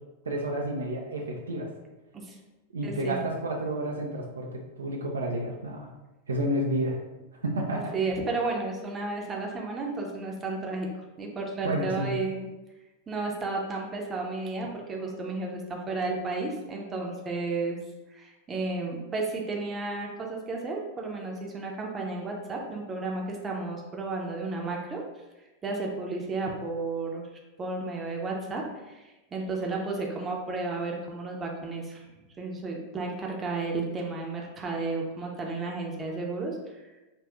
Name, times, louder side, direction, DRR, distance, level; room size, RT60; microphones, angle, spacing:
voice 1, 0.3-1.7 2.7-5.9 6.3-7.0 7.3-8.0 11.6-12.2, right 1 dB, 70° right, 0 dB, 0.5 m, -30 dB
voice 2, 2.8-3.2 7.9-10.9 11.2-12.5 13.1-17.8 18.1-25.0 25.6-27.3 27.6-29.0 29.3-32.1 32.4-36.6, right 3 dB, 20° right, 0 dB, 0.7 m, -32 dB
5.3 x 2.5 x 2.3 m, 1.1 s
figure-of-eight pair, 90°, 0 cm